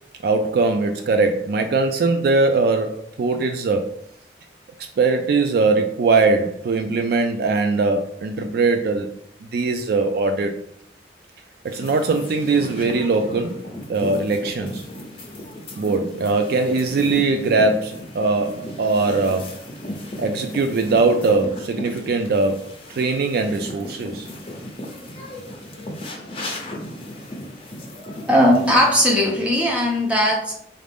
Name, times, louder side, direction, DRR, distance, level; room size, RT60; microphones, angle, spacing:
voice 1, 0.2-3.9 4.8-9.1 9.4-10.6 11.6-13.6 13.9-14.8 15.8-19.6 20.2-24.3, right 3 dB, 55° right, 6 dB, 0.3 m, -21 dB
sound 1, 11.7-29.1, left 1 dB, 30° left, 0.7 m, -35 dB
voice 2, 28.3-30.5, equal, 5° right, -2 dB, 0.8 m, -18 dB
4.2 x 2.5 x 3.4 m, 0.70 s
head